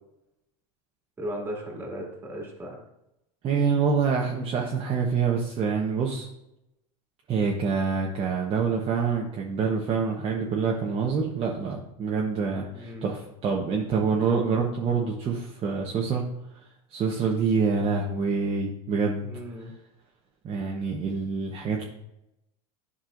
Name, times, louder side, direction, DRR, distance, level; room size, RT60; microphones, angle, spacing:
voice 1, 1.2-2.8 12.7-13.1 19.2-19.7, equal, 10° right, -1 dB, 2.3 m, -36 dB
voice 2, 3.4-6.3 7.3-16.2 16.9-19.2 20.4-21.8, right 5 dB, 30° right, -1 dB, 1.0 m, -26 dB
10.5 x 5.5 x 2.6 m, 0.86 s
supercardioid pair, 120°, 18 cm